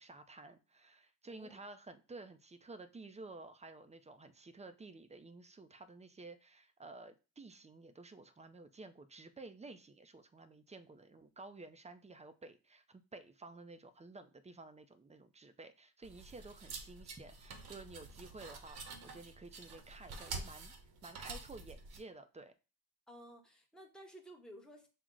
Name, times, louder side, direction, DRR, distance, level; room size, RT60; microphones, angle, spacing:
voice 1, 0.0-20.7 21.0-22.5, right 3 dB, 20° right, 0.4 m, -53 dB
voice 2, 1.3-1.6 23.1-24.9, equal, ahead, 0.8 m, -55 dB
sound 1, 16.0-22.0, right 4 dB, 70° right, 0.9 m, -48 dB
6.0 x 2.0 x 3.7 m
cardioid pair, 100°, 38 cm